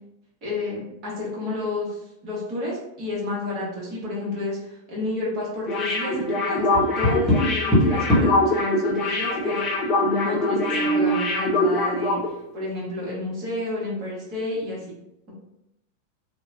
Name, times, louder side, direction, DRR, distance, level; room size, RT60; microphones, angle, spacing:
voice 1, 0.4-12.2 12.5-15.0, left 2 dB, 40° right, -6 dB, 1.2 m, -30 dB
sound 1, 5.7-12.3 12.6-12.7, left 2 dB, 35° left, 0.4 m, -24 dB
Tap, 6.7-8.5 10.5-11.2, equal, 10° left, 1.0 m, -22 dB
2.7 x 2.2 x 2.3 m, 0.83 s
figure-of-eight pair, 90°, 0 cm